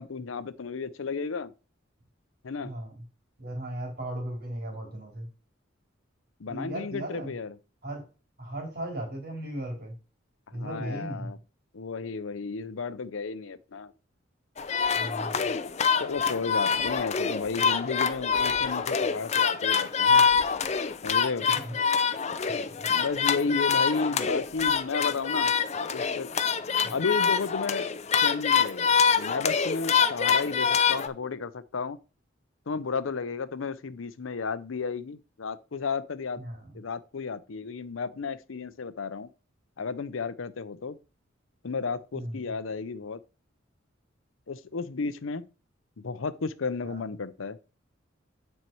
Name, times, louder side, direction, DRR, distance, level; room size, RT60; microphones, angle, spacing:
voice 1, 0.0-1.5 2.4-2.7 6.4-7.6 10.5-11.4 11.7-13.9 16.0-20.3 21.0-21.5 22.9-25.5 25.9-26.3 26.9-27.9 28.2-28.9 29.2-32.0 32.7-36.4 36.7-39.3 39.8-41.0 41.6-43.2 44.5-45.5 46.0-47.6, left 4 dB, 90° left, 0.6 m, -33 dB
voice 2, 2.6-3.0 3.4-5.3 6.5-7.3 7.8-8.1 8.4-9.9 10.5-11.4 14.9-15.5 21.4-21.8 22.5-22.9 26.8-26.9 36.4-36.8 42.1-42.5 46.8-47.1, right 1 dB, 50° right, 3.6 m, -37 dB
sound 1, 14.6-31.1, left 6 dB, 35° left, 0.5 m, -25 dB
9.2 x 4.5 x 4.6 m
head